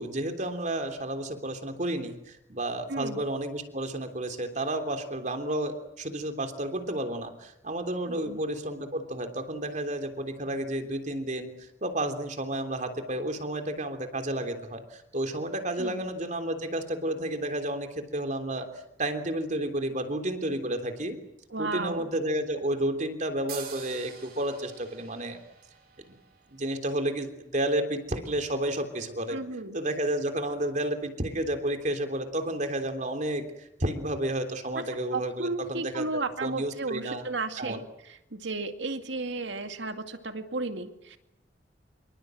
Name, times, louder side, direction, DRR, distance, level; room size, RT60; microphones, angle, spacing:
voice 1, 0.0-11.5 11.8-21.2 21.6-25.4 26.5-29.4 29.7-37.2 37.6-37.8, right 1 dB, 45° right, 6 dB, 3.3 m, -31 dB
voice 2, 2.9-3.2 8.1-8.4 15.8-16.1 21.5-22.1 29.3-29.8 34.7-34.8 35.1-41.2, right 3 dB, 90° right, 7 dB, 2.3 m, -34 dB
sound 1, 23.5-27.0, right 8 dB, 60° right, 5.0 m, -46 dB
26.5 x 24.0 x 7.9 m, 0.84 s
head